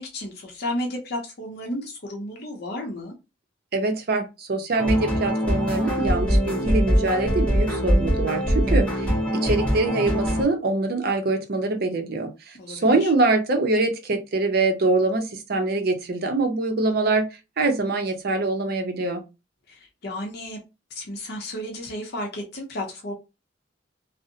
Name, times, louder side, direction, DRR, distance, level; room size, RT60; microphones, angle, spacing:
voice 1, 0.0-3.1 12.5-13.1 19.7-20.6 20.9-23.1, left 1 dB, 55° left, 0.6 m, -33 dB
voice 2, 3.7-17.3 17.6-19.2, right 2 dB, 55° right, 0.6 m, -24 dB
sound 1, 4.8-10.4, equal, 5° left, 0.9 m, -22 dB
2.6 x 2.0 x 2.6 m
head